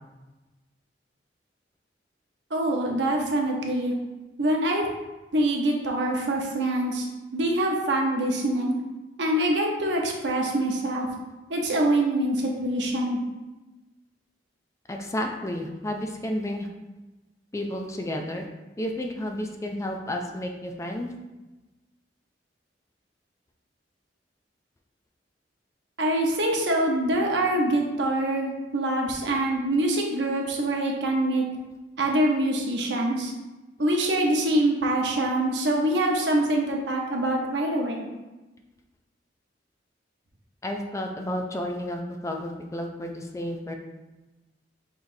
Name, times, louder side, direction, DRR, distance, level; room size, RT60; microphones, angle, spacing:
voice 1, 2.5-3.9 4.4-4.9 5.3-7.1 7.3-8.7 9.2-11.1 11.5-13.2 26.0-31.4 32.0-33.3 33.8-38.1, right 1 dB, 75° right, 0 dB, 0.9 m, -24 dB
voice 2, 14.9-16.7 17.5-18.4 18.8-21.1 40.6-43.8, left 1 dB, 15° left, 3 dB, 0.4 m, -31 dB
5.9 x 3.3 x 2.7 m, 1.1 s
head